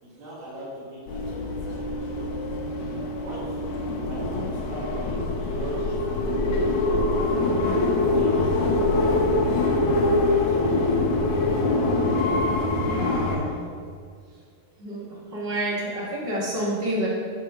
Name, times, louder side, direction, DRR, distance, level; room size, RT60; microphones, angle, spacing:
voice 1, 0.0-2.3 3.1-6.0 6.5-7.0 7.4-8.7 10.1-10.8, right 1 dB, 55° right, -8 dB, 3.3 m, -41 dB
sound 1, 1.1-13.4, left 2 dB, 75° left, 2.1 m, -24 dB
voice 2, 12.7-13.5 14.8-15.0 15.3-17.1, right 1 dB, 35° right, -6 dB, 0.9 m, -29 dB
8.7 x 4.1 x 4.9 m, 2.1 s
omnidirectional pair, 3.9 m